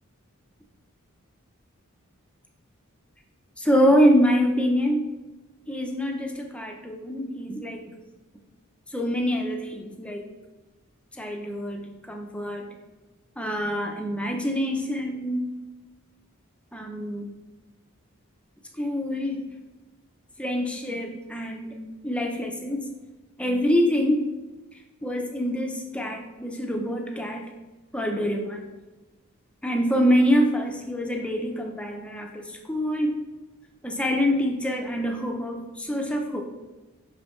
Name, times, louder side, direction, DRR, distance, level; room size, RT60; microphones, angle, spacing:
voice 1, 3.6-5.1 5.7-7.9 8.9-10.3 11.2-12.7 13.4-15.5 16.7-17.3 18.8-19.4 20.4-21.7 22.0-22.9 23.4-24.2 25.0-27.5 27.9-28.7 29.6-33.2 33.8-36.4, equal, 5° left, 2 dB, 0.6 m, -25 dB
6.0 x 5.1 x 3.1 m, 1.2 s
head